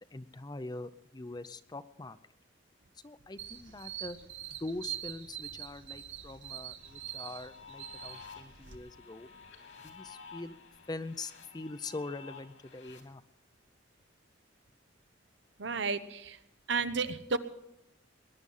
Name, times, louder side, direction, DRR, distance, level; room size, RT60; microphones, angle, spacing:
voice 1, 0.1-2.2 3.0-4.2 4.5-9.3 9.8-10.6 10.9-13.2, left 2 dB, 20° left, 13 dB, 0.6 m, -43 dB
sound 1, 3.4-8.8, right 11 dB, 90° right, 1.5 m, -44 dB
sound 2, 6.8-13.0, left 5 dB, 80° left, 3.1 m, -52 dB
voice 2, 15.6-16.4 16.7-17.4, right 4 dB, 70° right, 12 dB, 0.9 m, -32 dB
20.5 x 11.0 x 5.6 m, 0.86 s
head